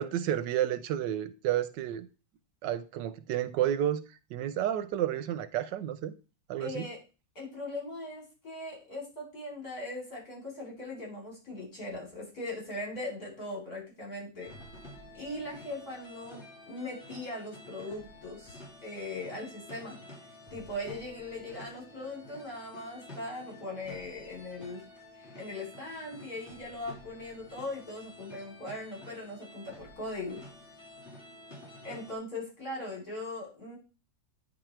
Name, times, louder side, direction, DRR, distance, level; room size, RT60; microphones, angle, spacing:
voice 1, 0.0-2.1 2.6-6.1 6.5-6.9, right 11 dB, 85° right, 12 dB, 1.3 m, -31 dB
voice 2, 6.6-7.0 7.3-14.5 15.1-20.0 20.5-24.8 25.2-30.4 31.8-33.8, left 2 dB, 55° left, -3 dB, 4.4 m, -40 dB
sound 1, 14.4-32.2, left 1 dB, 40° left, 2.4 m, -50 dB
9.3 x 4.1 x 4.4 m, 0.32 s
omnidirectional pair, 1.9 m